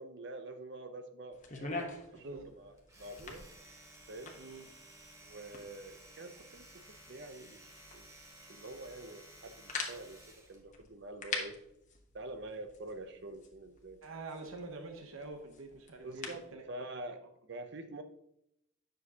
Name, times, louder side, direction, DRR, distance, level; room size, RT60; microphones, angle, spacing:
voice 1, 0.0-3.5 4.1-4.4 5.2-11.6 12.1-14.0 16.0-17.2 17.5-18.0, right 2 dB, 55° right, 8 dB, 0.6 m, -47 dB
sound 1, 1.3-16.5, left 4 dB, 35° left, 1.0 m, -47 dB
voice 2, 2.1-2.5 4.4-4.7 14.0-16.6, right 3 dB, 80° right, 4 dB, 0.9 m, -46 dB
Domestic sounds home sounds, 2.8-10.6, right 1 dB, 15° right, 1.1 m, -56 dB
9.7 x 6.3 x 2.8 m, 0.79 s
head